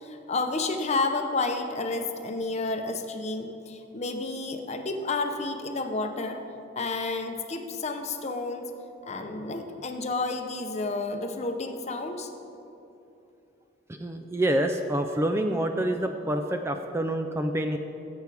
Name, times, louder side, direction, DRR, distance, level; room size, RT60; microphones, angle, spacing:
voice 1, 0.0-6.4 6.8-8.6 9.1-12.3, left 3 dB, 35° left, 5 dB, 0.7 m, -30 dB
voice 2, 13.9-17.8, right 1 dB, 15° right, 5 dB, 0.3 m, -27 dB
16.0 x 8.1 x 3.4 m, 2.8 s
head